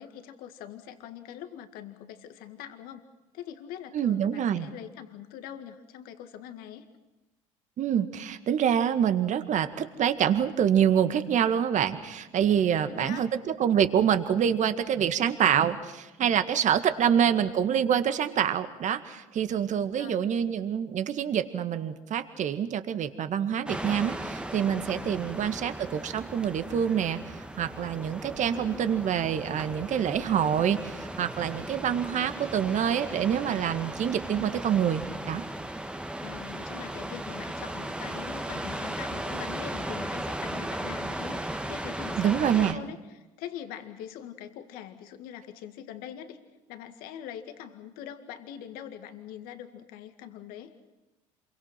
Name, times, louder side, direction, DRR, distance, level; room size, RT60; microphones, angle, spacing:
voice 1, 0.0-3.0 3.3-6.9 12.9-13.3 17.0-17.5 20.0-20.2 25.3-25.6 28.4-29.0 34.2-34.5 36.2-46.4 46.7-50.8, left 10 dB, 65° left, 8 dB, 2.0 m, -43 dB
voice 2, 3.9-4.7 7.8-13.3 13.6-27.2 27.6-35.4 42.2-42.8, right 9 dB, 50° right, 9 dB, 1.9 m, -26 dB
sound 1, 23.7-42.7, right 1 dB, 5° right, 1.6 m, -36 dB
28.0 x 23.5 x 6.0 m, 1.0 s
hypercardioid pair, 70°, 16 cm